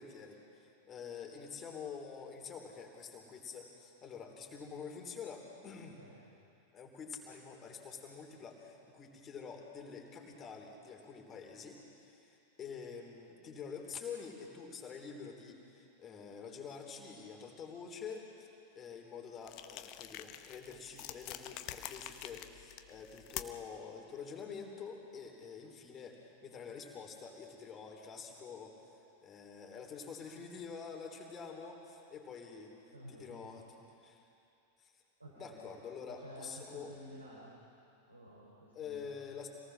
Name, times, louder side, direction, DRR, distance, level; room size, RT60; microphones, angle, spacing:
voice 1, 0.0-6.0 6.7-18.5 18.8-28.8 29.2-32.7 33.1-34.2 34.8-34.9 35.4-36.9 38.7-39.5, left 6 dB, 25° left, 1 dB, 3.5 m, -47 dB
voice 2, 5.8-6.2 32.9-33.5 35.2-35.7 36.1-37.6 38.1-39.2, right 1 dB, 85° right, -5 dB, 3.6 m, -53 dB
sound 1, 19.4-23.7, left 12 dB, 40° left, 0.9 m, -46 dB
27.0 x 18.5 x 6.3 m, 2.7 s
figure-of-eight pair, 90°, 0 cm